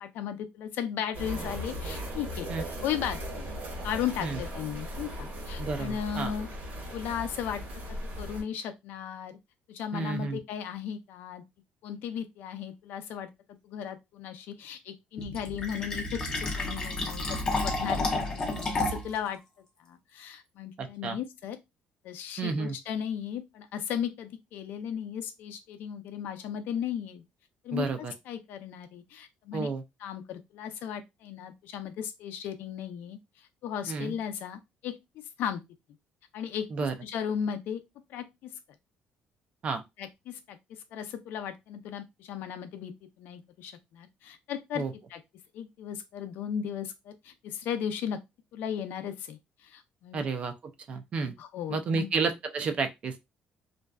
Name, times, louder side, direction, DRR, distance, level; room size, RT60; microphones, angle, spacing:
voice 1, 0.0-2.5 2.8-3.5 3.8-6.5 6.9-7.6 7.9-9.4 9.7-11.4 11.8-19.4 19.8-21.6 22.0-27.2 27.6-29.7 30.0-33.2 33.6-35.6 36.3-37.8 38.1-38.5 40.0-42.9 43.2-44.8 45.1-45.2 45.5-48.2 48.5-50.2 51.4-52.1, left 9 dB, 70° left, 0.4 m, -36 dB
sound 1, 1.1-8.4, equal, 60° right, 1.0 m, -38 dB
voice 2, 5.6-6.3 9.9-10.4 20.8-21.2 22.4-22.8 27.7-28.1 29.5-29.8 33.9-34.1 36.7-36.9 39.6-39.8 44.8-44.9 50.1-50.5 50.9-51.3 51.7-53.2, right 4 dB, 35° right, 0.4 m, -31 dB
Fill (with liquid), 15.2-19.2, left 2 dB, 20° left, 0.6 m, -31 dB
2.5 x 2.2 x 2.2 m
cardioid pair, 165°, 3 cm